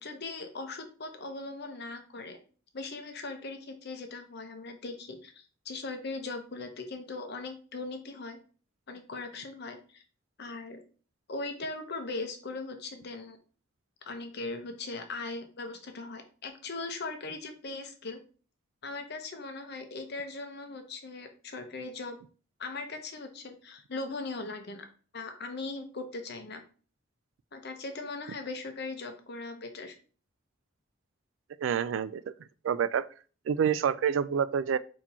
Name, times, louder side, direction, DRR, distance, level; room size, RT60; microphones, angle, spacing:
voice 1, 0.0-2.4 2.7-8.4 8.9-10.0 10.4-10.8 11.3-13.4 14.1-18.2 18.8-22.2 22.6-24.9 25.1-26.6 27.5-29.9, left 3 dB, 55° left, 0.8 m, -39 dB
voice 2, 31.6-32.2 32.6-33.0 33.5-34.8, right 7 dB, 80° right, 0.3 m, -27 dB
4.3 x 2.8 x 4.2 m
head